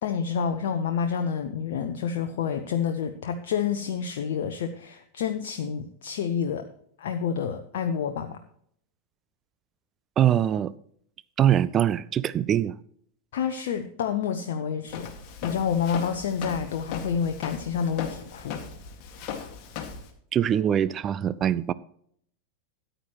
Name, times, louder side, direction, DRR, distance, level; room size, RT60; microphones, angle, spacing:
voice 1, 0.0-6.6 7.0-8.4 13.3-15.1 15.4-18.6, left 7 dB, 55° left, 0.7 m, -28 dB
voice 2, 10.2-10.7 11.4-12.7 20.3-21.7, right 10 dB, 25° right, 0.4 m, -23 dB
Walk footsteps, 14.9-20.1, left 7 dB, 40° left, 1.9 m, -38 dB
13.5 x 9.0 x 3.0 m
figure-of-eight pair, 90°, 0 cm